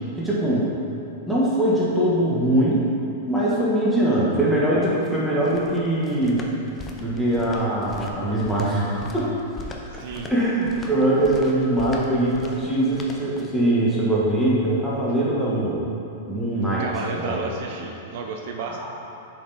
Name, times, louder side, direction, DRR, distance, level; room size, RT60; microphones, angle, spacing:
voice 1, 0.1-0.7 1.3-2.9 3.3-6.4 7.0-9.3 10.3-15.8 16.3-16.9 17.2-17.4 18.8-18.9, right 1 dB, ahead, -8 dB, 1.5 m, -22 dB
sound 1, 4.8-13.7, left 2 dB, 20° left, 0.6 m, -40 dB
voice 2, 9.9-10.3 16.8-18.9, right 4 dB, 60° right, 2 dB, 0.6 m, -32 dB
7.1 x 4.3 x 4.2 m, 2.9 s
hypercardioid pair, 135°, 0 cm